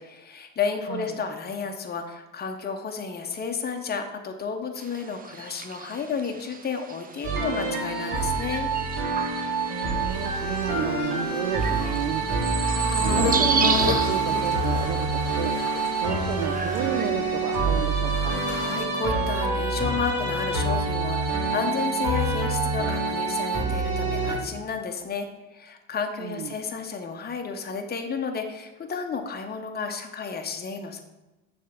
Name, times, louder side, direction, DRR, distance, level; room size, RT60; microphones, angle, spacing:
voice 1, 0.0-8.7 18.5-31.0, left 5 dB, 25° left, 4 dB, 0.9 m, -32 dB
sound 1, 4.8-17.1, right 5 dB, 20° right, 0.5 m, -33 dB
sound 2, 7.2-24.3, right 3 dB, 55° right, 2.1 m, -26 dB
voice 2, 9.7-12.2 12.9-15.5 15.9-18.4 26.2-26.6, right 9 dB, 70° right, 7 dB, 0.6 m, -32 dB
sound 3, 10.1-18.8, left 6 dB, 75° left, 0.9 m, -34 dB
6.4 x 3.5 x 5.1 m, 1.0 s
hypercardioid pair, 65°, 39 cm